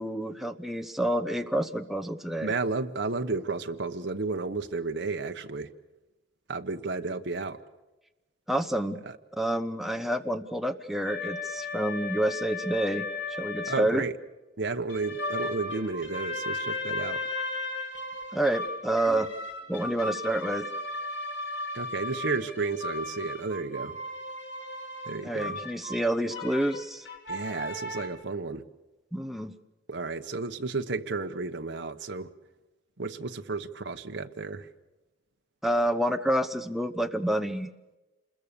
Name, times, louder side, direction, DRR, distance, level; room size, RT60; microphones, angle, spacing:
voice 1, 0.0-2.5 8.5-9.0 9.4-13.1 13.4-14.0 18.3-19.3 19.7-20.7 25.2-27.1 29.1-29.5 35.6-37.7, right 1 dB, ahead, 6 dB, 0.9 m, -28 dB
voice 2, 2.4-5.7 6.5-7.6 9.1-9.2 13.7-14.2 14.6-17.2 21.7-24.0 25.0-25.6 27.3-28.6 29.9-32.3 33.0-34.7, right 3 dB, 60° right, 6 dB, 1.1 m, -32 dB
sound 1, 11.1-13.9 14.9-28.1, left 2 dB, 65° left, 3.3 m, -36 dB
27.5 x 21.5 x 6.8 m, 1.1 s
head